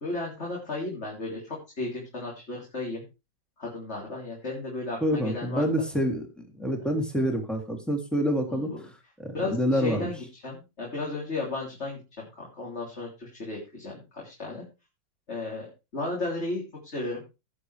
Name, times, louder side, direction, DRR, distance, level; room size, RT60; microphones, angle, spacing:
voice 1, 0.0-3.0 3.6-5.6 8.5-8.7 9.3-14.6 15.3-17.2, left 2 dB, 40° left, -3 dB, 3.6 m, -34 dB
voice 2, 5.0-6.2 6.6-8.7 9.2-10.1, equal, ahead, 2 dB, 2.8 m, -27 dB
18.0 x 7.4 x 3.4 m, 0.28 s
omnidirectional pair, 1.8 m